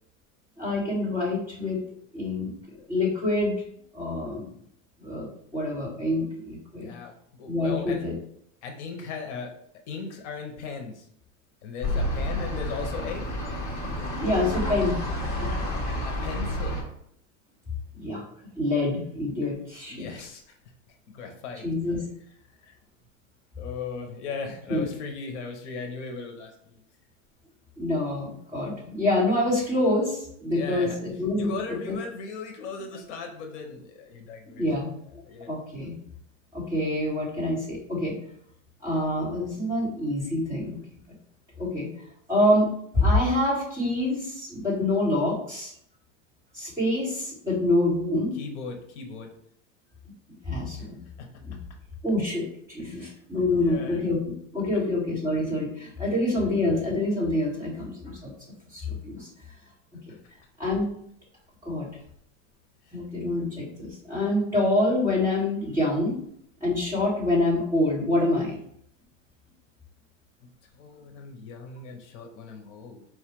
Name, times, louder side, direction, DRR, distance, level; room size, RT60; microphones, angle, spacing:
voice 1, 0.6-1.8 2.1-2.5 2.9-3.5 3.9-4.5 5.0-6.9 7.5-8.1 14.2-15.0 15.4-15.5 17.9-18.2 18.6-20.1 21.6-22.0 24.7-24.9 27.8-31.9 34.5-34.9 35.5-35.9 36.5-38.2 38.8-40.8 41.6-41.9 42.3-42.7 42.9-45.7 46.5-48.3 50.5-51.0 51.5-51.6 52.0-54.2 54.5-58.3 58.7-59.3 60.6-60.8 61.6-61.9 62.9-66.2 66.6-68.6, left 1 dB, 10° right, -9 dB, 1.6 m, -26 dB
voice 2, 6.8-8.1 8.6-9.5 9.9-11.1 11.6-13.3 15.5-16.8 19.4-19.5 19.9-20.6 21.1-21.7 22.3-22.8 23.6-26.8 30.5-34.7 35.0-35.5 48.3-49.3 51.2-51.3 52.8-54.0 54.7-54.9 56.0-56.3 60.1-60.2 62.8-63.0 70.7-73.0, left 5 dB, 65° left, 3 dB, 0.8 m, -38 dB
sound 1, 11.8-16.8, left 1 dB, 25° left, 1.1 m, -29 dB
4.4 x 2.4 x 4.5 m, 0.68 s
supercardioid pair, 170°, 38 cm